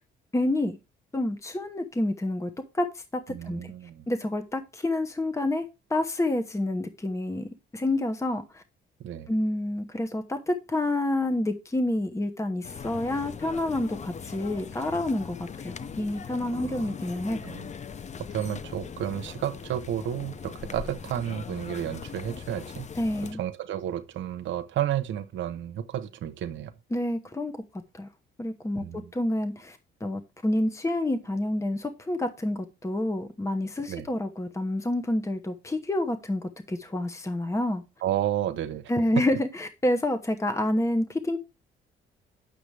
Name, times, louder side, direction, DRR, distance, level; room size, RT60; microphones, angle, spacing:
voice 1, 0.3-0.8 1.1-3.7 4.1-8.6 9.3-17.6 23.0-23.4 26.9-27.5 27.9-28.1 28.4-37.8 38.9-41.4, left 1 dB, 15° left, 1.0 m, -28 dB
voice 2, 3.3-4.0 9.0-9.3 16.6-16.9 17.4-17.7 18.3-22.9 23.4-26.7 28.8-29.1 33.9-34.1 38.0-38.9, right 11 dB, 75° right, 0.9 m, -32 dB
sound 1, 12.6-23.3, left 6 dB, 35° left, 0.6 m, -40 dB
9.0 x 6.8 x 3.3 m
cardioid pair, 90°, 20 cm